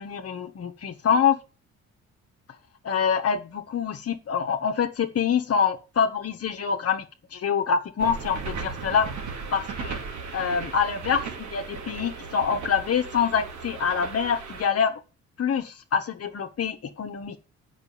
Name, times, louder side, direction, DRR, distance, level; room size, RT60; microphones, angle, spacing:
voice 1, 0.0-1.4 2.8-7.0 7.3-9.1 9.5-10.0 10.3-15.0 15.4-17.4, left 7 dB, 55° left, 5 dB, 1.5 m, -25 dB
sound 1, 8.0-14.7, right 5 dB, 70° right, 2.7 m, -36 dB
8.3 x 6.3 x 6.9 m, 0.31 s
cardioid pair, 90°, 30 cm